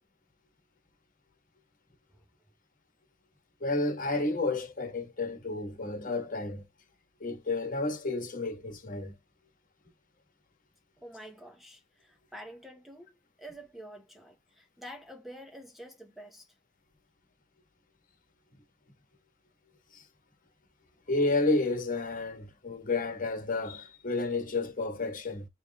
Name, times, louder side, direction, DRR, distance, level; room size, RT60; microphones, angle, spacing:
voice 1, 3.6-6.6 7.2-9.1 19.9-20.0 21.1-25.5, left 2 dB, 45° left, 1.3 m, -31 dB
voice 2, 11.0-13.1 13.4-16.5, equal, ahead, 0.7 m, -48 dB
5.3 x 3.2 x 2.2 m
head